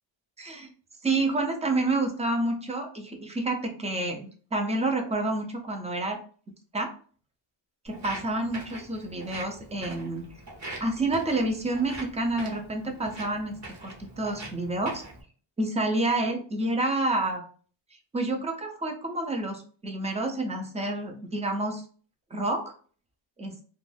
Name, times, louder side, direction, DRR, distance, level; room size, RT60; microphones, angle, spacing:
voice 1, 0.4-0.7 1.0-6.2 6.7-6.9 7.8-10.2 10.8-15.0 15.6-17.4 18.1-21.8 22.3-22.7 23.4-23.6, right 2 dB, 15° right, 3 dB, 0.4 m, -29 dB
Walk footsteps, 7.9-15.2, right 2 dB, 35° right, 0.8 m, -43 dB
2.5 x 2.2 x 3.3 m, 0.41 s
wide cardioid pair, 165°, 48 cm